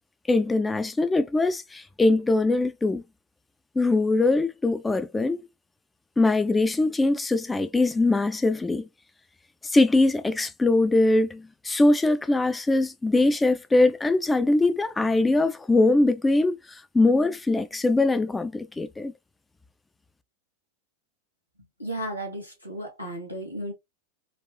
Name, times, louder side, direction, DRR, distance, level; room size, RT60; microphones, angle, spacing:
voice 1, 0.3-3.0 3.8-5.4 6.2-8.9 9.6-19.1, left 2 dB, 10° left, 0.3 m, -22 dB
voice 2, 21.8-23.7, right 1 dB, 90° left, 1.5 m, -34 dB
4.1 x 2.4 x 2.2 m
figure-of-eight pair, 90°, 0 cm